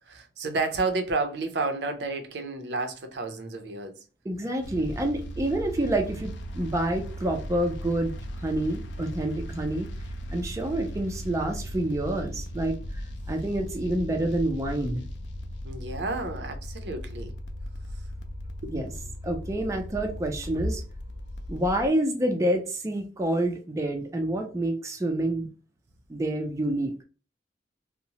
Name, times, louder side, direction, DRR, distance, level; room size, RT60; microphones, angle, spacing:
voice 1, 0.1-4.0 15.6-17.3 18.6-18.7, right 3 dB, 65° right, 0.5 m, -31 dB
voice 2, 4.2-8.1 8.4-9.9 10.3-15.0 18.7-18.9 19.2-20.8 21.5-25.5 26.1-26.9, right 1 dB, 15° right, 0.4 m, -28 dB
sound 1, 4.6-21.9, equal, 80° left, 0.4 m, -37 dB
2.7 x 2.0 x 2.8 m
head